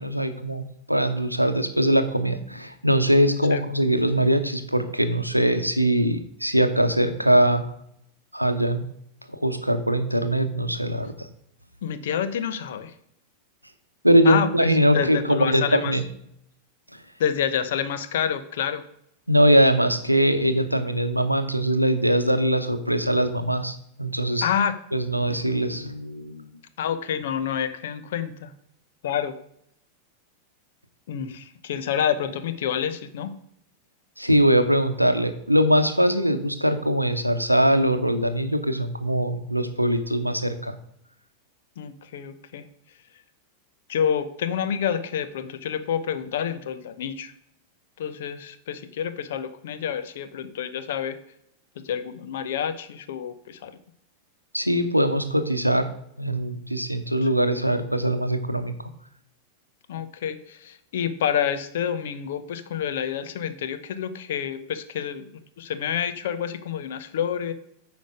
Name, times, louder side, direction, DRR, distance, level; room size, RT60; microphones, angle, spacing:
voice 1, 0.0-7.7 8.3-8.8 9.3-11.3 14.0-16.0 16.9-17.0 19.3-24.5 24.9-26.4 34.2-40.8 54.5-55.9 56.2-58.7, equal, 90° right, 9 dB, 0.7 m, -22 dB
voice 2, 11.8-12.9 14.2-14.5 14.9-15.9 17.2-18.8 24.4-24.8 26.8-28.5 29.0-29.4 31.1-33.4 41.8-42.7 43.9-47.3 48.0-51.2 51.8-53.7 59.9-65.3 65.6-67.5, left 8 dB, 55° left, 11 dB, 0.7 m, -28 dB
9.1 x 5.3 x 5.0 m, 0.74 s
figure-of-eight pair, 90°, 0 cm